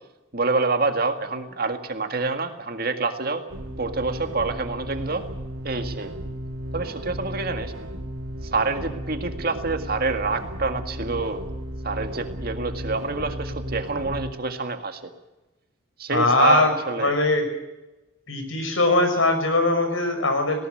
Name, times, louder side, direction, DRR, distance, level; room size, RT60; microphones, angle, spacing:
voice 1, 0.3-3.4 3.8-5.2 5.6-6.1 6.7-7.7 8.5-11.4 11.8-15.0 16.0-17.1, right 3 dB, 50° right, 6 dB, 2.0 m, -26 dB
sound 1, 3.5-14.3, equal, 80° right, 3.3 m, -34 dB
voice 2, 16.1-16.7 17.0-17.5 18.3-20.7, left 2 dB, 80° left, 6 dB, 5.7 m, -21 dB
19.5 x 18.5 x 7.9 m, 1.0 s
head